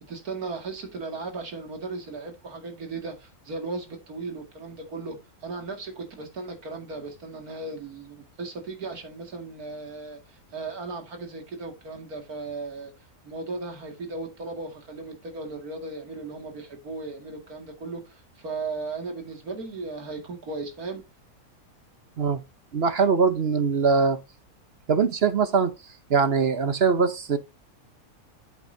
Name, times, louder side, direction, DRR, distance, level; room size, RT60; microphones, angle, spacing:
voice 1, 0.1-12.9 13.2-21.0, right 3 dB, 80° right, 2.7 m, -36 dB
voice 2, 22.7-24.2 24.9-25.7 26.1-27.4, right 5 dB, 50° right, 1.0 m, -22 dB
8.3 x 8.3 x 2.7 m
omnidirectional pair, 1.5 m